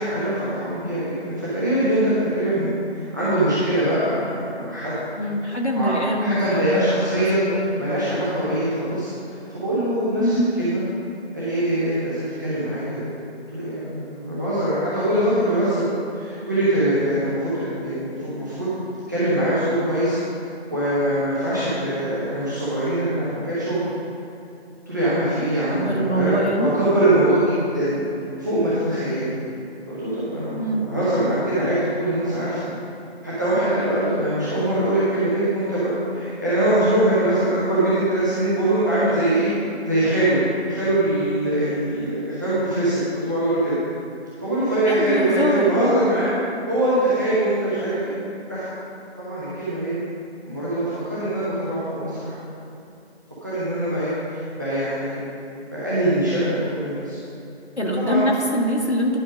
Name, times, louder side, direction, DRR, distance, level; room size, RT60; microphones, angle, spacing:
voice 1, 0.0-2.7 3.1-5.0 5.7-5.9 6.2-7.4 7.8-10.8 11.3-13.1 13.5-15.8 16.1-18.8 19.1-20.2 20.7-23.9 24.9-28.0 28.4-29.3 29.9-32.7 33.2-39.5 39.8-40.4 40.7-43.8 44.4-46.3 46.7-48.1 48.5-48.7 49.2-49.9 50.4-52.3 53.4-55.2 55.6-57.2 57.9-58.3, right 1 dB, 15° right, -12 dB, 1.1 m, -23 dB
voice 2, 5.2-7.7 10.2-10.5 25.7-26.7 30.6-30.9 44.9-46.2 57.8-59.2, equal, 90° left, -1 dB, 1.8 m, -23 dB
10.0 x 5.7 x 5.2 m, 2.8 s
figure-of-eight pair, 165°, 33 cm